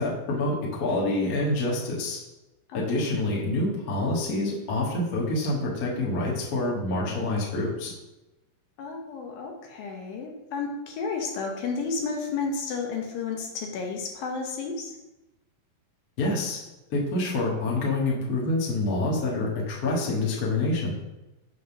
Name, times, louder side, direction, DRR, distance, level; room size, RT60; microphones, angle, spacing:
voice 1, 0.0-2.2 2.7-7.9 16.2-16.6 16.9-21.0, left 2 dB, 55° left, -4 dB, 1.0 m, -27 dB
voice 2, 2.7-3.1 8.8-15.0, left 4 dB, 75° left, 2 dB, 2.6 m, -32 dB
7.7 x 3.7 x 5.9 m, 0.99 s
omnidirectional pair, 4.4 m